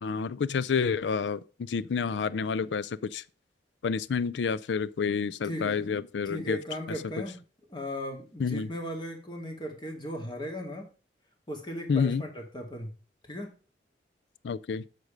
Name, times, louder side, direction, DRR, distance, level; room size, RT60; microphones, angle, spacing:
voice 1, 0.0-3.2 3.8-6.6 8.4-8.7 11.9-12.2 14.4-14.8, left 5 dB, 90° left, 0.4 m, -29 dB
voice 2, 5.4-5.8 6.3-7.4 7.7-10.9 11.5-12.9 13.3-13.5, equal, 25° left, 2.2 m, -37 dB
8.1 x 6.8 x 5.1 m
head